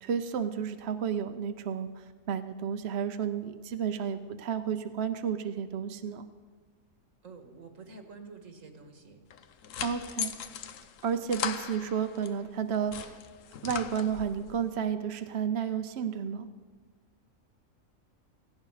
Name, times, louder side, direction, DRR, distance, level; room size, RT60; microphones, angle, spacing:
voice 1, 0.0-6.2 9.8-10.3 11.0-13.2 13.6-16.5, right 7 dB, 60° right, 8 dB, 0.9 m, -32 dB
voice 2, 7.2-9.2, right 4 dB, 80° right, 5 dB, 2.0 m, -48 dB
sound 1, 9.3-12.3 12.7-14.4, left 8 dB, 75° left, 1.1 m, -38 dB
18.0 x 16.0 x 4.9 m, 1.5 s
omnidirectional pair, 1.4 m